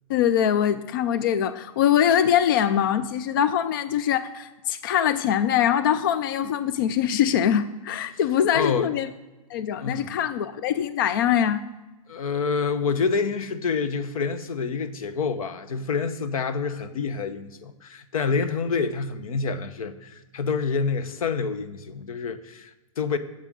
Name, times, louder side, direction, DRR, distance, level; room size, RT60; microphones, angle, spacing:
voice 1, 0.1-9.1 9.5-11.6, left 9 dB, 40° left, 0.4 m, -23 dB
voice 2, 8.5-8.9 9.8-10.1 12.1-23.2, left 5 dB, 80° left, 0.9 m, -27 dB
8.9 x 7.6 x 6.2 m
hypercardioid pair, 170°, 18 cm